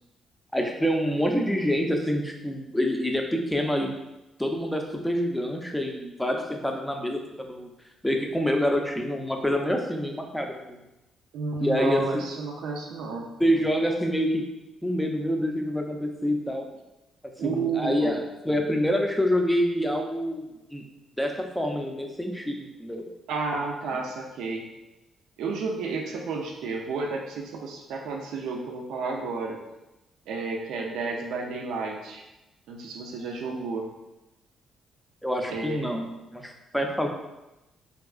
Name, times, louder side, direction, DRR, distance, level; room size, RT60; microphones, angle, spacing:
voice 1, 0.5-3.9 4.4-7.7 8.0-10.8 11.6-12.3 13.4-14.4 14.8-16.7 17.4-20.8 21.2-23.1 35.2-37.1, equal, 5° left, 2 dB, 0.4 m, -27 dB
voice 2, 11.3-13.3 17.4-18.2 23.3-24.7 25.4-29.6 30.3-32.2 32.7-33.9 35.5-35.9, right 4 dB, 85° right, 0 dB, 0.4 m, -31 dB
3.5 x 2.3 x 2.3 m, 0.98 s
cardioid pair, 90°, 0 cm